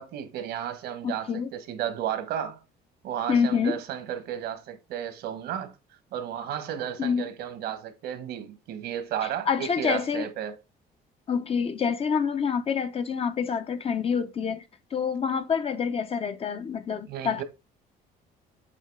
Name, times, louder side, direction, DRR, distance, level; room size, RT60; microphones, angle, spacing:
voice 1, 0.0-2.6 3.0-5.7 6.1-10.6 17.1-17.4, right 10 dB, 75° right, 1.3 m, -33 dB
voice 2, 1.0-1.5 3.3-3.8 7.0-7.2 9.5-10.3 11.3-14.6 14.9-17.4, left 6 dB, 35° left, 0.6 m, -27 dB
7.7 x 2.9 x 4.6 m
cardioid pair, 110°, 17 cm